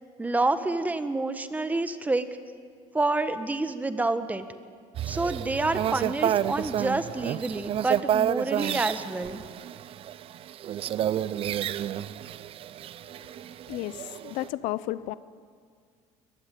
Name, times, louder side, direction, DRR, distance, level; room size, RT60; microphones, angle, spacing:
voice 1, 0.2-2.3 2.9-4.4 5.1-9.4, right 2 dB, 10° right, 11 dB, 1.3 m, -28 dB
sound 1, 4.9-14.5, right 11 dB, 45° right, 0.6 m, -30 dB
voice 2, 13.7-15.1, left 16 dB, 75° left, 17 dB, 0.8 m, -32 dB
22.0 x 21.5 x 9.2 m, 2.1 s
cardioid pair, 130°, 13 cm